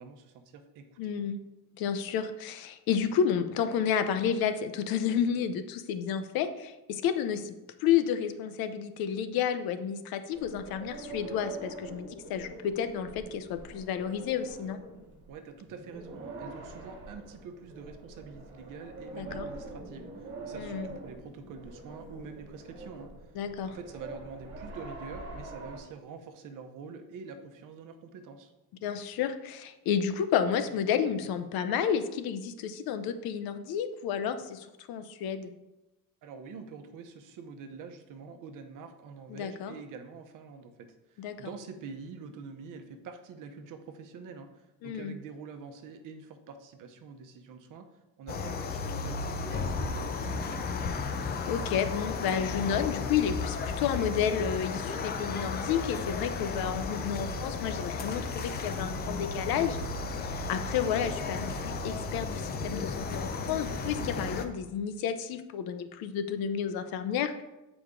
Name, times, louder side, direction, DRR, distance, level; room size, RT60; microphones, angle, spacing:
voice 1, 0.0-1.1 15.3-23.3 23.7-28.5 36.2-50.8, right 5 dB, 60° right, 6 dB, 0.9 m, -46 dB
voice 2, 1.0-1.4 1.8-7.5 7.8-14.8 19.2-19.5 20.5-20.9 23.3-23.8 28.8-35.5 39.3-39.8 41.2-41.3 44.8-45.1 51.5-59.8 60.1-67.4, left 8 dB, 80° left, 10 dB, 0.7 m, -31 dB
sound 1, 10.3-25.8, right 2 dB, 30° right, 1.6 m, -44 dB
sound 2, 48.3-64.5, left 4 dB, 30° left, 0.4 m, -34 dB
8.1 x 5.0 x 3.7 m, 1.0 s
cardioid pair, 180°, 36 cm